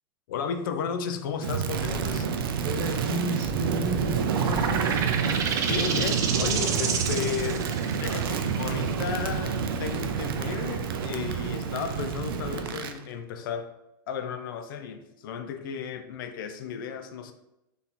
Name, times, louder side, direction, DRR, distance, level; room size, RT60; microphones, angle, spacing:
voice 1, 0.3-2.3 5.6-7.7 8.0-13.8 14.1-17.3, left 7 dB, 70° left, 0.4 m, -34 dB
Crackle, 1.4-13.0, right 6 dB, 90° right, 0.5 m, -29 dB
voice 2, 2.3-5.1, right 1 dB, 50° right, 0.9 m, -33 dB
sound 1, 4.3-11.6, right 6 dB, 25° right, 0.4 m, -31 dB
4.1 x 2.8 x 3.7 m
supercardioid pair, 140°, 12 cm